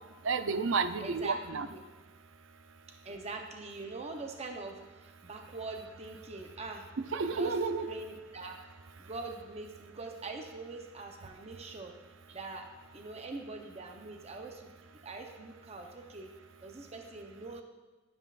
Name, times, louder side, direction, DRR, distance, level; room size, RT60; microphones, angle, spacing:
voice 1, 0.2-1.7 7.1-7.9, right 4 dB, 75° right, 11 dB, 0.5 m, -31 dB
voice 2, 1.0-1.8 3.0-6.9 7.2-7.5 7.9-8.6 9.0-11.9 12.3-12.7 12.9-14.7 15.0-16.3 16.6-17.6, right 3 dB, 35° right, 3 dB, 0.7 m, -43 dB
11.0 x 10.5 x 2.5 m, 1.2 s
head